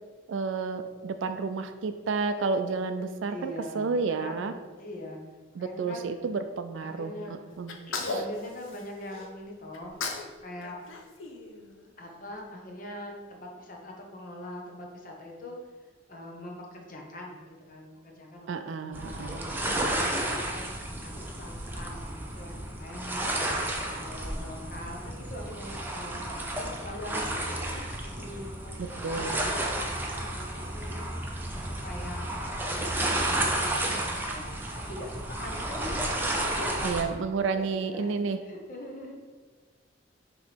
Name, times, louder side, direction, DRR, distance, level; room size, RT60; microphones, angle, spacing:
voice 1, 0.3-4.5 5.6-7.8 8.1-8.2 18.5-19.4 28.8-29.4 36.8-38.4, right 4 dB, 70° right, 8 dB, 0.4 m, -31 dB
voice 2, 3.3-4.5 4.8-5.2 5.5-6.0 6.8-7.4 8.0-9.9 10.4-10.8 12.0-15.5 16.1-22.0 22.3-23.5 24.0-29.7 30.2-31.1 31.5-32.3 32.7-33.4 33.8-34.5 34.9-39.1, left 1 dB, 45° left, 0 dB, 1.0 m, -43 dB
Sneeze, 7.7-9.3 9.7-10.3 10.6-12.1, left 3 dB, 80° left, 0.7 m, -36 dB
sound 1, 18.9-37.0, right 1 dB, 10° right, 0.6 m, -32 dB
6.4 x 3.0 x 5.1 m, 1.4 s
head